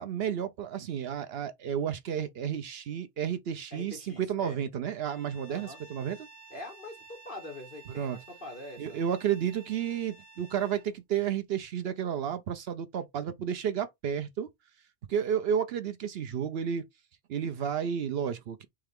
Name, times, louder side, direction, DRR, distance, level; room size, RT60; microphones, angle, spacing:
voice 1, 0.0-6.3 8.0-8.2 8.8-14.5 15.1-16.9 17.3-18.7, right 8 dB, 65° right, 0.8 m, -32 dB
voice 2, 3.7-4.6 5.5-5.8 6.5-9.0, left 2 dB, 50° left, 1.8 m, -44 dB
Bowed string instrument, 5.0-10.9, right 5 dB, 25° right, 1.4 m, -53 dB
3.7 x 3.4 x 3.4 m
omnidirectional pair, 1.2 m